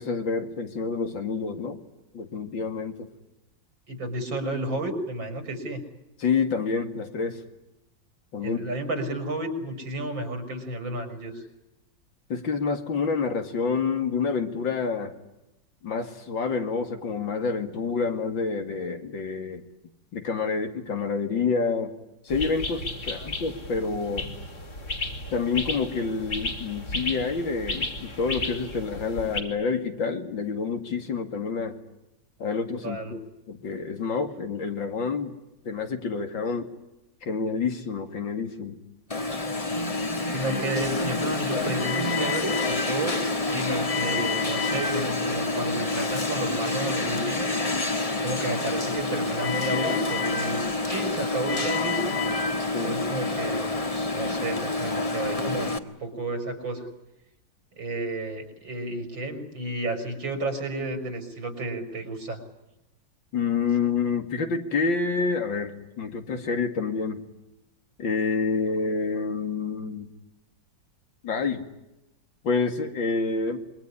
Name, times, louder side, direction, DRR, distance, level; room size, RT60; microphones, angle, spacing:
voice 1, 0.0-1.8 2.1-3.1 6.2-7.4 8.3-8.6 12.3-15.1 15.8-19.6 20.1-21.9 22.2-24.3 25.3-31.8 32.4-33.2 33.5-35.4 35.6-36.7 37.2-38.8 52.7-53.0 63.3-67.2 68.0-70.1 71.2-71.7 72.4-73.6, left 5 dB, 80° left, 7 dB, 3.0 m, -28 dB
voice 2, 3.9-5.8 8.4-11.4 23.2-23.3 32.8-33.2 40.3-47.5 48.2-52.2 52.8-53.8 54.1-56.9 57.7-62.4, right 2 dB, 85° right, 7 dB, 5.6 m, -32 dB
sound 1, 22.3-29.4, left 2 dB, 55° left, 4.8 m, -34 dB
Alarm, 39.1-55.8, left 2 dB, 20° left, 1.4 m, -27 dB
26.5 x 23.0 x 9.7 m, 0.92 s
omnidirectional pair, 2.1 m